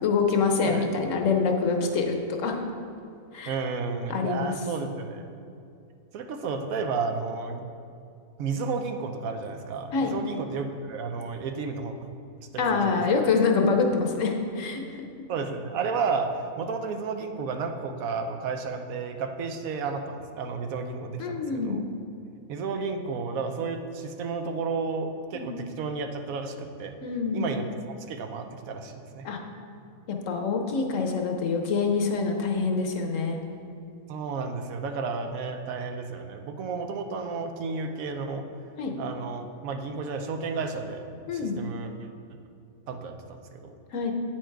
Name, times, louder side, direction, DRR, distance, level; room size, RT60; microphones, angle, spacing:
voice 1, 0.0-2.6 3.3-3.6 4.1-4.5 9.9-10.1 12.6-15.1 21.2-21.8 25.3-25.6 27.0-27.5 29.2-29.4 30.1-33.4 38.8-38.9 41.3-41.6 43.9-44.1, left 4 dB, 65° left, 3 dB, 1.0 m, -26 dB
voice 2, 3.5-5.2 6.1-7.7 8.4-12.1 12.5-13.2 15.3-16.3 16.6-21.8 22.5-26.9 27.3-27.7 28.1-29.3 34.1-38.4 39.0-41.1 41.3-42.1 42.9-43.7, right 4 dB, 75° right, 6 dB, 1.0 m, -32 dB
8.8 x 4.5 x 4.5 m, 2.5 s
omnidirectional pair, 1.5 m